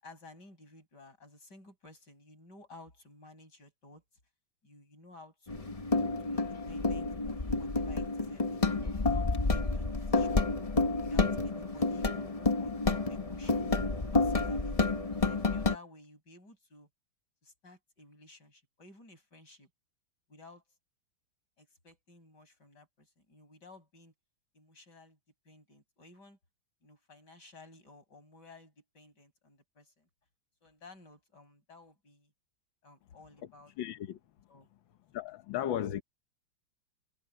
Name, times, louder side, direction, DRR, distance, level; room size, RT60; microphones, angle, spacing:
voice 1, 0.0-4.0 4.6-10.5 11.0-13.7 14.1-14.8 15.2-16.9 17.4-19.7 20.3-20.6 21.6-24.1 24.5-25.2 25.4-26.4 26.8-30.1 30.6-32.3 32.8-33.7 34.5-34.7, left 2 dB, 50° left, 8.0 m, -55 dB
sound 1, 5.5-15.8, left 3 dB, 30° left, 0.7 m, -30 dB
voice 2, 33.8-34.2 35.1-36.0, left 11 dB, 70° left, 1.7 m, -35 dB
omnidirectional pair, 2.3 m